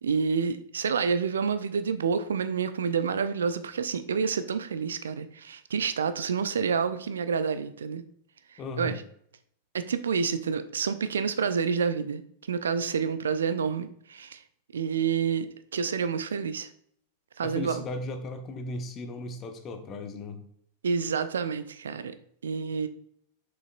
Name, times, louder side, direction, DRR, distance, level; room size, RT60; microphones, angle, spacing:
voice 1, 0.0-8.0 8.5-9.0 9.7-12.2 12.5-14.4 14.7-15.5 15.7-16.7 17.4-17.8 20.8-22.2 22.4-22.9, right 6 dB, 65° right, 12 dB, 0.4 m, -28 dB
voice 2, 8.6-9.0 17.4-20.4, left 2 dB, 30° left, 6 dB, 0.9 m, -36 dB
6.9 x 5.5 x 2.5 m, 0.65 s
figure-of-eight pair, 90°, 0 cm